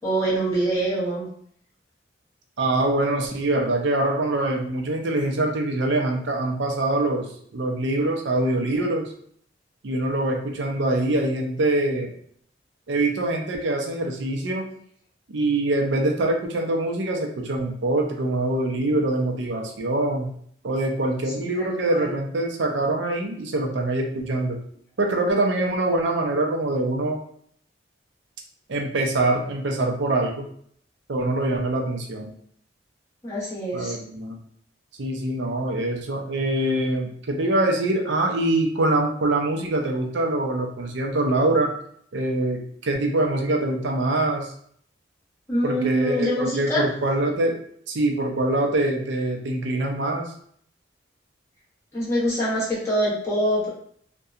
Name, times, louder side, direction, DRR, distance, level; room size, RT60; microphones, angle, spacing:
voice 1, 0.0-1.3 21.4-22.1 33.2-34.0 45.5-46.8 51.9-53.7, right 1 dB, 15° left, -9 dB, 1.0 m, -25 dB
voice 2, 2.6-9.1 9.8-12.1 12.9-14.7 15.3-20.3 20.6-24.6 25.0-27.2 28.7-30.5 31.1-32.3 33.7-34.4 35.0-41.7 42.1-44.5 45.6-47.6 47.9-50.3, right 2 dB, 75° right, 2 dB, 0.5 m, -24 dB
2.7 x 2.2 x 2.4 m, 0.62 s
head